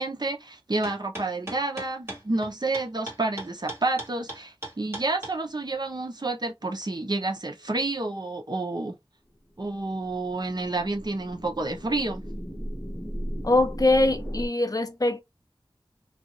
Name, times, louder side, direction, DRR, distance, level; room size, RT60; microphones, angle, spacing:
voice 1, 0.0-9.0 9.6-12.2, right 2 dB, 50° right, 0.8 m, -29 dB
sound 1, 0.8-5.3, right 1 dB, 25° right, 1.4 m, -37 dB
sound 2, 9.7-14.5, equal, 20° left, 1.1 m, -36 dB
voice 2, 13.4-15.2, left 2 dB, 40° left, 0.6 m, -22 dB
2.6 x 2.4 x 2.9 m
wide cardioid pair, 45°, 9 cm